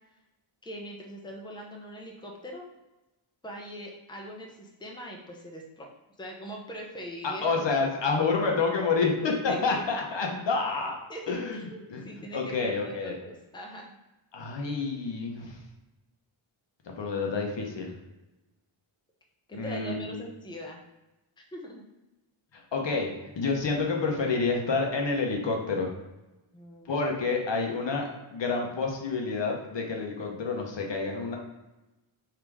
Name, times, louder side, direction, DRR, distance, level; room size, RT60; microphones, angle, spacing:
voice 1, 0.6-2.6 3.4-5.9 6.2-7.6 9.5-9.8 11.1-13.9 19.5-20.8 21.4-21.8 26.5-27.0, equal, 10° left, -1 dB, 0.7 m, -41 dB
voice 2, 7.2-11.0 11.3-12.1 12.3-13.2 14.3-15.6 16.8-17.9 19.5-20.2 22.5-23.1 23.4-25.9 26.9-31.4, left 4 dB, 60° left, 1 dB, 0.9 m, -28 dB
3.5 x 2.9 x 4.7 m, 1.0 s
cardioid pair, 75°, 50 cm